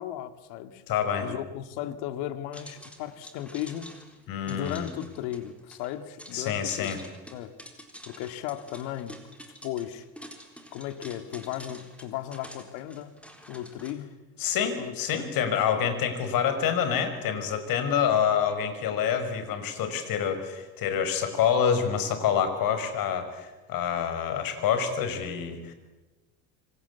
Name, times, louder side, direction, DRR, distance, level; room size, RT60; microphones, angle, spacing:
voice 1, 0.0-0.8 1.2-4.0 4.5-7.0 7.3-7.6 8.1-9.2 9.6-10.1 10.7-13.2 13.5-14.2 14.8-15.3, left 12 dB, 85° left, 10 dB, 2.2 m, -36 dB
voice 2, 0.9-1.3 4.3-4.9 6.3-7.0 14.4-25.7, left 8 dB, 60° left, 9 dB, 5.5 m, -27 dB
sound 1, 2.5-13.9, equal, 5° left, 4.0 m, -48 dB
27.0 x 25.5 x 8.3 m, 1.1 s
cardioid pair, 125°, 39 cm